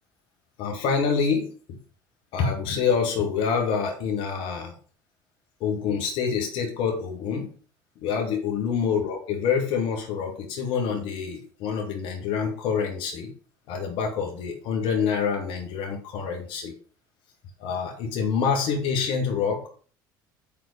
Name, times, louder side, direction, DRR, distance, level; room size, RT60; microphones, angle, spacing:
voice 1, 0.6-1.8 2.3-4.8 5.6-7.5 8.0-13.3 13.7-16.7 17.6-19.7, left 6 dB, 55° left, 1 dB, 1.8 m, -26 dB
8.8 x 4.3 x 5.0 m, 0.42 s
figure-of-eight pair, 60°, 11 cm